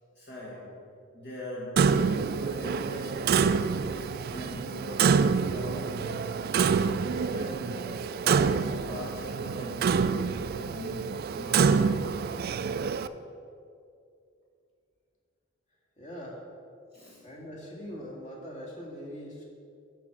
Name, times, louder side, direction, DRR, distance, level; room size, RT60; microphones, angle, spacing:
voice 1, 0.1-0.8 1.1-2.0 2.3-6.5 6.7-12.5 16.9-17.3, left 1 dB, 55° left, -5 dB, 1.6 m, -42 dB
Clock, 1.8-13.1, right 5 dB, 50° right, 0.3 m, -27 dB
voice 2, 16.0-16.4 17.2-19.4, equal, 40° left, -3 dB, 2.1 m, -41 dB
11.0 x 4.6 x 7.7 m, 2.5 s
head